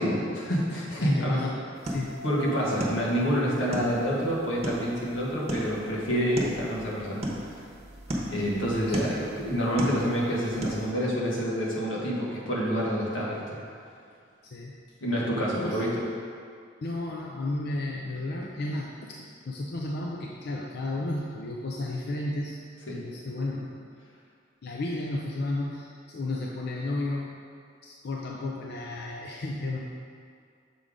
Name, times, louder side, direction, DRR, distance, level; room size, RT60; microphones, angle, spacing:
voice 1, 0.0-1.4 2.2-7.6 8.3-13.6 15.0-16.0 22.9-23.0, equal, 90° left, -4 dB, 1.4 m, -28 dB
voice 2, 1.0-2.2 8.1-8.2 8.9-9.0 14.4-14.7 15.5-15.9 16.8-22.6 22.9-23.9 24.6-27.4 27.8-29.8, left 2 dB, 55° left, -1 dB, 0.5 m, -33 dB
sound 1, 1.7-10.9, equal, 35° right, 0.9 m, -36 dB
sound 2, 1.9-8.9, left 2 dB, 5° right, 1.0 m, -50 dB
6.8 x 3.8 x 4.9 m, 2.3 s
head